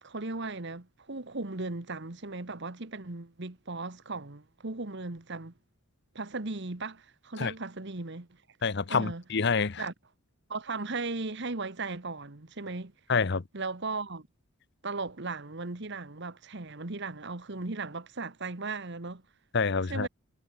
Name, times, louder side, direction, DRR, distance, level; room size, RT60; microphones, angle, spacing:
voice 1, 0.0-5.5 6.1-8.3 8.9-9.2 9.8-9.9 10.5-12.9 13.5-14.3 14.8-19.2 19.9-20.1, right 3 dB, 55° right, 1.5 m, -37 dB
voice 2, 8.6-9.8 13.1-13.4 19.5-20.1, left 5 dB, 55° left, 0.8 m, -27 dB
head